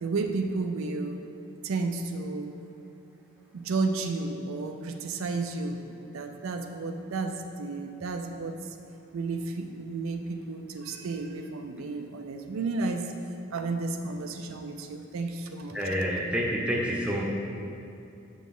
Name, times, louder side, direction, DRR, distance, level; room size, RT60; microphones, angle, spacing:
voice 1, 0.0-1.2 1.6-2.5 3.5-5.8 6.1-8.8 9.1-13.1 13.5-15.8, right 3 dB, 70° right, 5 dB, 0.4 m, -32 dB
voice 2, 15.7-17.2, equal, 5° right, -3 dB, 0.8 m, -28 dB
6.8 x 6.1 x 3.7 m, 2.7 s
head